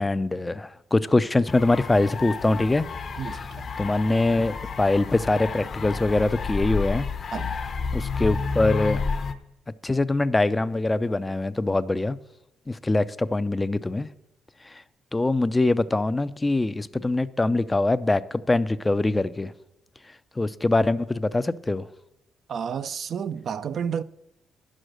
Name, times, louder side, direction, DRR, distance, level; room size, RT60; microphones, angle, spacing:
voice 1, 0.0-2.8 3.8-7.1 7.9-9.0 9.8-12.2 12.7-14.1 14.7-14.8 15.1-19.5 20.4-21.9, left 2 dB, 15° left, 0.4 m, -23 dB
sound 1, 1.5-9.3, left 4 dB, 50° left, 0.9 m, -30 dB
voice 2, 3.2-3.6 7.3-7.6 22.5-24.0, right 7 dB, 60° right, 0.4 m, -31 dB
9.9 x 6.3 x 6.5 m
cardioid pair, 90°, 0 cm